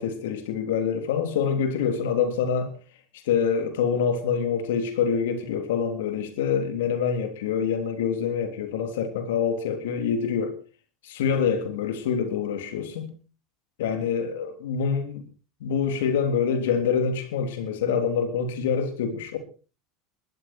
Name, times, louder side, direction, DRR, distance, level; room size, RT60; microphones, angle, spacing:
voice 1, 0.0-2.7 3.2-10.6 11.0-13.1 13.8-15.2 15.6-19.4, left 6 dB, 80° left, 3.5 m, -26 dB
20.0 x 14.0 x 4.5 m
hypercardioid pair, 90°, 0 cm